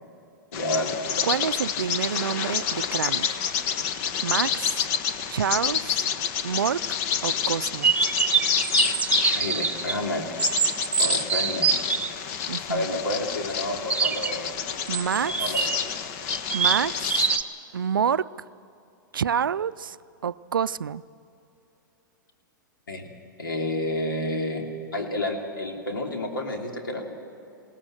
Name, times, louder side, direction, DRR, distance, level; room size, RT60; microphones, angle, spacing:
voice 1, 0.5-1.2 9.3-10.2 11.0-11.7 12.7-14.5 15.3-15.7 22.9-23.1 23.4-24.6 24.9-27.1, left 1 dB, 85° left, 1 dB, 3.1 m, -30 dB
Bird vocalization bird call bird song, 0.5-17.4, left 8 dB, 45° left, 1.1 m, -29 dB
voice 2, 1.2-3.4 4.2-4.8 5.3-6.0 6.4-7.0 7.2-7.9 12.5-12.9 14.9-15.3 16.5-17.2 17.7-18.3 19.1-20.0 20.2-21.0, right 7 dB, 85° right, 18 dB, 0.4 m, -27 dB
sound 1, 7.8-10.0 10.4-12.1 13.9-14.4 14.9-15.8 16.3-17.4, right 6 dB, 15° right, 0.8 m, -24 dB
21.0 x 17.5 x 7.6 m, 2.8 s
hypercardioid pair, 110°, 11 cm